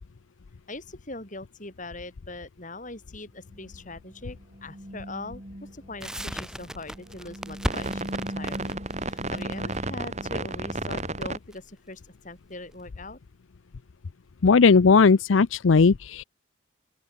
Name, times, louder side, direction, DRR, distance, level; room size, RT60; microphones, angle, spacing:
voice 1, 0.7-13.2, left 2 dB, 40° left, 4.8 m, -41 dB
sound 1, 3.6-4.0 4.3-11.4, right 2 dB, 35° right, 5.2 m, -34 dB
Crackle, 6.0-12.8, equal, 5° right, 1.1 m, -37 dB
voice 2, 14.4-16.2, left 4 dB, 80° left, 0.6 m, -17 dB
open air
head